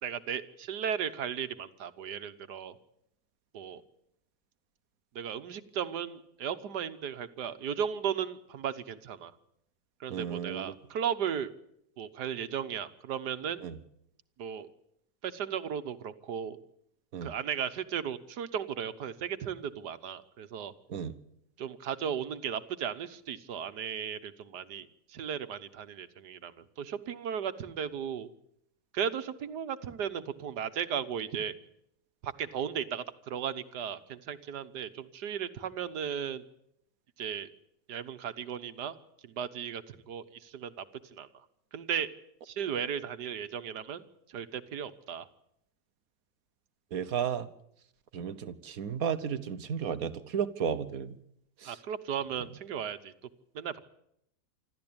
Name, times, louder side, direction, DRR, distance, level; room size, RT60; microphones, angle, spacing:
voice 1, 0.0-2.8 3.5-3.8 5.1-9.3 10.0-11.5 12.0-13.6 14.4-14.7 15.2-16.6 17.2-20.7 21.6-28.3 28.9-31.5 32.2-36.4 37.2-37.5 37.9-38.9 39.2-40.7 41.1-41.4 41.7-42.1 42.4-44.0 44.3-45.3 51.6-53.1 53.5-53.8, right 8 dB, 85° right, 11 dB, 1.7 m, -36 dB
voice 2, 10.1-10.7 13.6-13.8 17.1-17.3 20.9-21.1 46.9-47.5 48.1-51.2 51.6-51.8, right 8 dB, 60° right, 13 dB, 1.4 m, -33 dB
26.0 x 13.5 x 8.8 m, 0.75 s
omnidirectional pair, 1.7 m